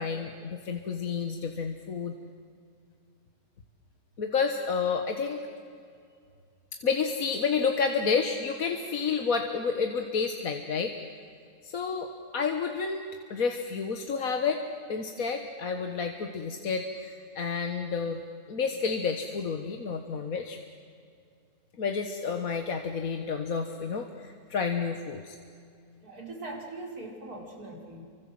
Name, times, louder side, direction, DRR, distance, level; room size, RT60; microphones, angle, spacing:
voice 1, 0.0-2.1 4.2-5.4 6.8-10.9 11.6-13.0 13.3-14.6 14.9-18.2 18.5-20.6 21.8-25.4, left 5 dB, 70° left, 5 dB, 1.8 m, -30 dB
voice 2, 26.0-28.0, right 2 dB, 85° right, 0 dB, 5.2 m, -41 dB
29.0 x 25.0 x 7.7 m, 2.3 s
omnidirectional pair, 1.6 m